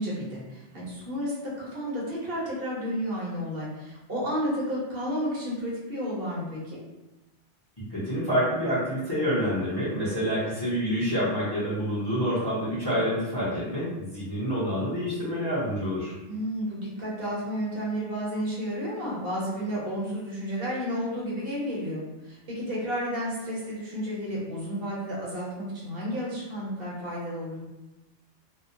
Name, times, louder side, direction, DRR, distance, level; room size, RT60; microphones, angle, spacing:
voice 1, 0.0-6.8 16.3-27.6, equal, 60° right, -6 dB, 1.1 m, -32 dB
voice 2, 7.9-16.1, equal, 25° left, -9 dB, 0.7 m, -27 dB
2.8 x 2.0 x 2.5 m, 1.0 s
omnidirectional pair, 1.1 m